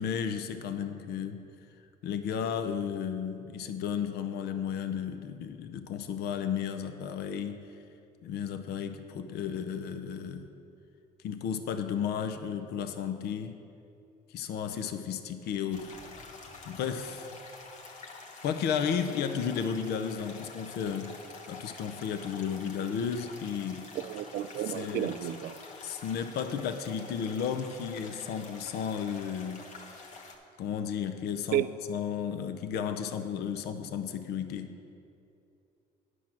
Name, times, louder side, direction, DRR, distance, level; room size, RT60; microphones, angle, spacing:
voice 1, 0.0-1.4 2.0-7.6 8.2-10.5 11.2-13.6 14.3-15.9 16.6-17.3 18.4-21.2 21.5-23.9 24.7-25.1 25.8-30.1 30.6-34.8, left 7 dB, 70° left, 8 dB, 0.7 m, -33 dB
sound 1, 15.7-30.3, left 3 dB, 45° left, 1.2 m, -48 dB
voice 2, 23.9-25.6 31.5-31.7, right 12 dB, 65° right, 13 dB, 0.4 m, -31 dB
10.0 x 6.2 x 5.9 m, 2.7 s
cardioid pair, 110°, 17 cm